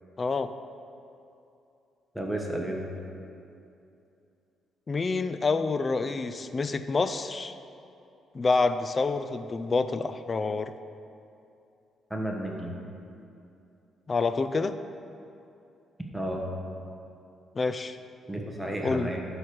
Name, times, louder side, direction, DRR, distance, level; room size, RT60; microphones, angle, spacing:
voice 1, 0.2-0.5 4.9-7.6 8.3-10.7 14.1-14.7 17.6-18.0 18.8-19.1, left 4 dB, 35° left, 11 dB, 0.4 m, -27 dB
voice 2, 2.1-2.8 12.1-12.7 16.1-16.4 18.3-19.2, right 1 dB, ahead, 0 dB, 1.3 m, -32 dB
12.0 x 4.9 x 4.7 m, 2.7 s
cardioid pair, 90°, 0 cm